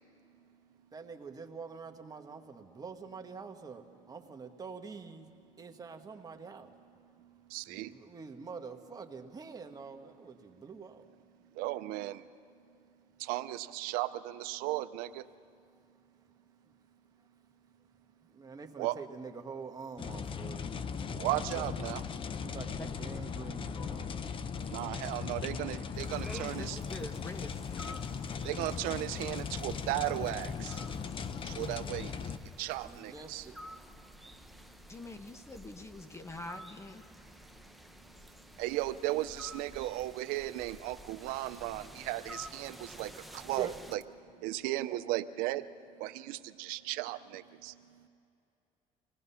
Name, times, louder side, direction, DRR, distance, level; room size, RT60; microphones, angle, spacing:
voice 1, 0.9-5.3 5.6-6.7 7.7-11.1 16.6-16.7 18.2-20.6 21.4-21.7 22.4-24.2 30.0-30.3 32.8-33.6 34.3-34.5 39.7-40.2 43.3-43.7, right 5 dB, 25° right, 1.4 m, -46 dB
voice 2, 7.5-7.9 11.5-12.3 13.2-15.3 18.8-19.0 21.1-22.0 24.7-26.8 28.4-30.8 31.4-33.5 38.6-44.0 44.4-45.7 46.0-48.1, right 16 dB, 90° right, 0.5 m, -36 dB
sound 1, 20.0-32.4, left 6 dB, 35° left, 0.7 m, -38 dB
sound 2, 25.9-44.0, equal, ahead, 0.8 m, -52 dB
voice 3, 26.2-27.6 34.9-37.0, left 2 dB, 20° left, 1.1 m, -44 dB
25.5 x 18.5 x 5.7 m
cardioid pair, 110°, 14 cm